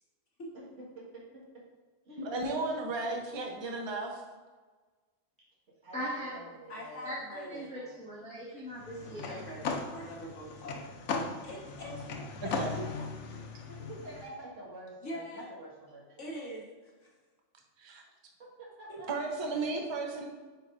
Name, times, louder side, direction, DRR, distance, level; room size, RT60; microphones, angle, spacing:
voice 1, 1.0-1.4 2.0-2.3 5.8-7.1 7.7-8.0 13.7-16.2 18.6-19.1, right 1 dB, 70° right, -6 dB, 2.1 m, -47 dB
voice 2, 2.2-4.2 12.5-12.7 17.8-18.0 19.1-20.3, right 3 dB, 25° right, 1 dB, 0.7 m, -34 dB
voice 3, 5.9-6.4 7.0-7.1 7.4-9.4, equal, 5° left, -8 dB, 1.3 m, -40 dB
voice 4, 6.7-7.7 9.2-10.8 11.4-12.0 12.4-13.1 15.0-15.5 16.2-17.2 18.9-19.1, equal, 65° left, -3 dB, 1.8 m, -43 dB
sound 1, 8.7-14.2, left 4 dB, 90° left, 1.1 m, -38 dB
9.1 x 4.8 x 2.6 m, 1.4 s
omnidirectional pair, 1.4 m